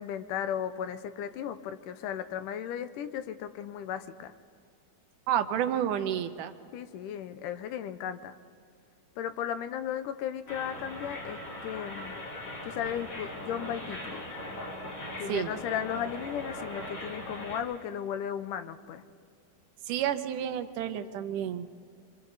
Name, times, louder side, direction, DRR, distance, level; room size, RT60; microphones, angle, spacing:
voice 1, 0.0-4.3 6.7-8.3 9.2-12.2 12.7-14.2 15.2-19.0, left 9 dB, 85° left, 11 dB, 2.3 m, -35 dB
voice 2, 5.3-6.5 15.3-15.5 19.9-21.7, right 10 dB, 80° right, 9 dB, 2.4 m, -30 dB
sound 1, 10.5-17.6, left 1 dB, 50° left, 3.8 m, -40 dB
27.0 x 24.5 x 4.0 m, 2.3 s
omnidirectional pair, 3.6 m